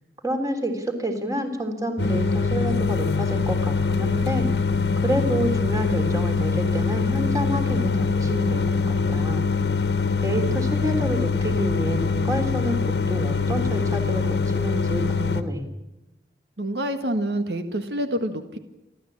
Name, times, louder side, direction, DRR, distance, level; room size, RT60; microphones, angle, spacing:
voice 1, 0.2-4.5 5.0-8.6 8.9-9.5 10.2-12.8 13.1-15.6, equal, 20° right, 5 dB, 3.2 m, -28 dB
sound 1, 2.0-15.4, left 4 dB, 75° left, 1.4 m, -23 dB
voice 2, 16.6-18.6, right 1 dB, 75° right, 7 dB, 1.7 m, -27 dB
29.0 x 12.5 x 8.6 m, 0.95 s
head